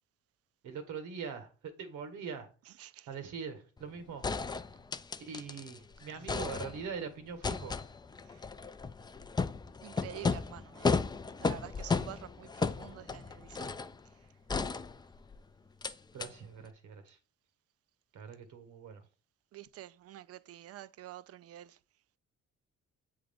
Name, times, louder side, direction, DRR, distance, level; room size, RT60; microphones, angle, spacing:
voice 1, 0.6-2.5 3.1-4.3 5.2-7.9 16.1-17.2 18.1-19.0, right 6 dB, 80° right, 1.3 m, -42 dB
voice 2, 2.7-3.1 8.2-8.4 9.8-11.0 11.4-13.7 19.5-21.8, right 13 dB, 55° right, 0.4 m, -48 dB
sound 1, 3.8-3.9 4.2-5.8 6.1-7.0 7.4-14.0 14.5-15.4 15.8-15.9 16.2-16.3, left 4 dB, 15° left, 0.3 m, -34 dB
7.6 x 3.6 x 3.5 m
cardioid pair, 90°, 30 cm